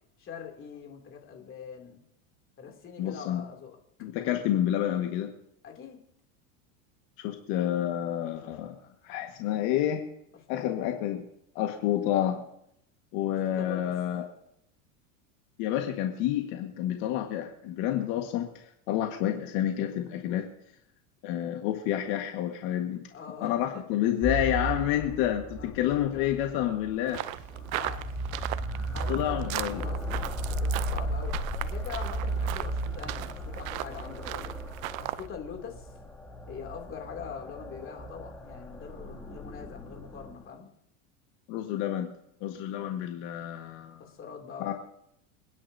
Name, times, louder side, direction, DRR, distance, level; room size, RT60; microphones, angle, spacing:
voice 1, 0.2-2.0 2.6-3.8 5.6-6.0 10.5-10.9 13.6-13.9 23.1-23.8 25.6-26.5 27.5-28.1 28.9-30.2 30.5-34.5 35.0-35.9 36.5-40.7 44.0-44.7, left 7 dB, 30° left, 2 dB, 2.9 m, -43 dB
voice 2, 3.0-3.4 4.0-5.3 7.2-8.8 9.0-10.0 10.5-11.2 11.6-12.4 13.1-14.3 15.6-18.5 18.9-20.5 21.2-23.0 23.4-27.2 29.1-29.8 41.5-42.1 42.4-44.1 44.6-44.7, left 11 dB, 60° left, 3 dB, 1.8 m, -29 dB
sound 1, 24.2-40.5, right 1 dB, 5° left, 2.5 m, -35 dB
sound 2, 27.1-35.3, right 15 dB, 80° right, 0.8 m, -37 dB
28.5 x 10.5 x 2.8 m, 0.75 s
supercardioid pair, 130°, 40 cm